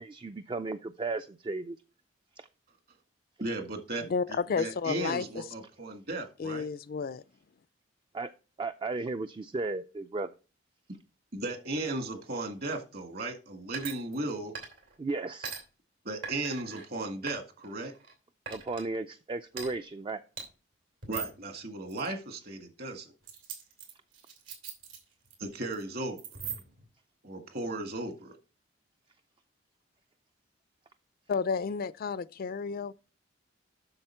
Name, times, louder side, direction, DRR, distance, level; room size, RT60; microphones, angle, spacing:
voice 1, 0.0-1.8 2.4-2.5 8.1-8.3 8.6-10.3 15.0-15.5 18.5-20.2, right 3 dB, 25° right, 0.3 m, -35 dB
voice 2, 3.4-6.7 11.3-14.5 16.0-17.9 21.1-23.1 25.4-26.2 27.2-28.3, right 2 dB, 50° right, 1.8 m, -36 dB
voice 3, 4.1-5.2 6.4-7.2 31.3-32.9, left 5 dB, 50° left, 0.3 m, -31 dB
sound 1, 13.7-14.3 14.5-15.0 15.4-15.6 16.2-16.8 17.3-18.1 18.5-18.9 19.5-19.7 20.4-20.5 21.0-21.4 21.9-22.1 23.2-25.3 25.6-25.8 26.2-26.9, right 6 dB, 80° right, 2.9 m, -41 dB
7.9 x 6.4 x 4.4 m
head